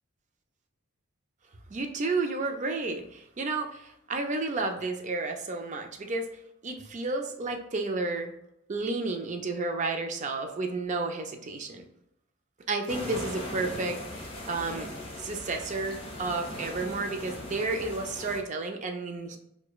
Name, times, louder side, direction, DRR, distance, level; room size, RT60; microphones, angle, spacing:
voice 1, 1.7-6.3 6.6-8.3 8.7-11.8 12.7-14.0 14.5-14.9 15.2-19.4, right 3 dB, 35° right, 5 dB, 0.4 m, -31 dB
sound 1, 12.9-18.4, left 1 dB, 25° left, 0.6 m, -39 dB
4.7 x 2.2 x 2.2 m, 0.79 s
head